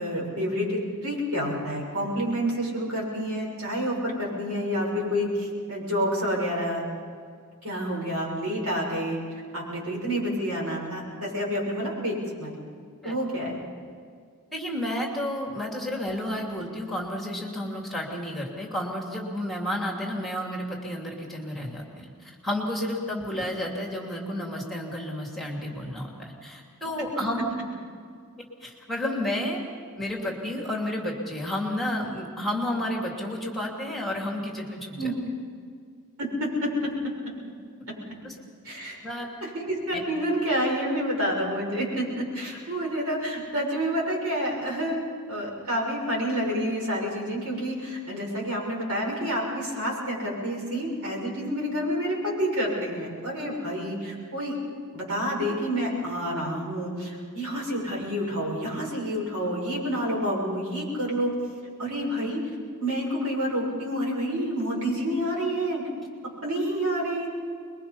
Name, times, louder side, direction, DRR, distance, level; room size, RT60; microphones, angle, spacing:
voice 1, 0.0-6.8 7.6-9.2 9.5-12.5 13.0-13.6 35.0-35.1 36.2-36.9 38.6-39.0 39.4-45.0 45.3-54.6 54.9-61.3 61.8-62.4 62.8-65.9 66.4-67.3, equal, 80° right, -2 dB, 6.7 m, -28 dB
voice 2, 14.5-27.6 28.4-29.6 30.0-35.1 38.2-38.3 39.0-39.3 39.9-40.0, left 1 dB, ahead, -1 dB, 2.7 m, -31 dB
25.0 x 22.0 x 5.6 m, 2.1 s
head